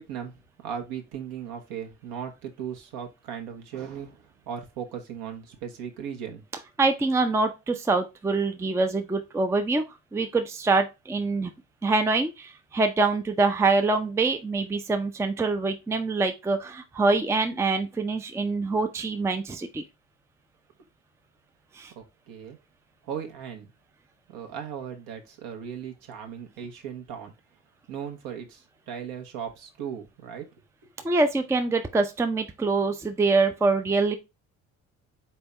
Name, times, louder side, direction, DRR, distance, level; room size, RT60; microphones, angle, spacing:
voice 1, 0.0-6.4 21.9-22.6 23.0-23.7 24.3-27.3 27.9-30.5 30.8-30.9, right 8 dB, 60° right, 1.2 m, -37 dB
voice 2, 6.8-9.8 10.1-11.5 11.8-19.8 21.7-21.9 31.0-34.2, right 3 dB, 5° right, 0.5 m, -25 dB
4.2 x 3.4 x 3.2 m
figure-of-eight pair, 55°, 41 cm